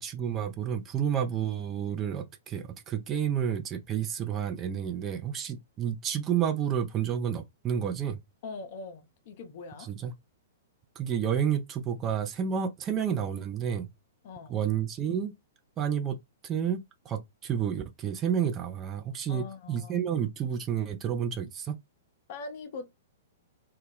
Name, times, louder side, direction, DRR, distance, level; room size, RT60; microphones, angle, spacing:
voice 1, 0.0-8.2 9.8-10.1 11.0-13.9 14.5-15.3 15.8-16.2 16.4-21.7, right 8 dB, 25° right, 0.4 m, -30 dB
voice 2, 8.4-9.9 14.2-14.6 19.3-20.0 22.3-22.9, left 4 dB, 45° left, 0.5 m, -42 dB
2.2 x 2.1 x 3.4 m
figure-of-eight pair, 110°, 0 cm